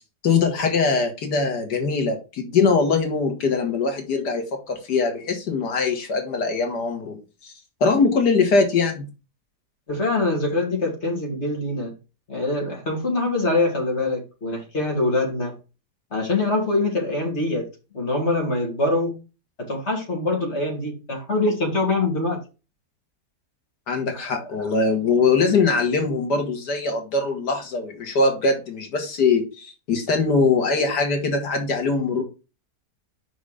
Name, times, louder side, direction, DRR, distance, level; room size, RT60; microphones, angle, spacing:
voice 1, 0.2-7.5 7.8-9.1 23.9-32.2, left 4 dB, 80° left, 4 dB, 2.1 m, -22 dB
voice 2, 9.9-11.9 12.3-15.6 16.1-17.7 17.9-19.2 19.6-22.4 24.2-24.7, left 2 dB, 40° left, 0 dB, 2.7 m, -24 dB
5.5 x 5.0 x 5.0 m, 0.30 s
omnidirectional pair, 1.8 m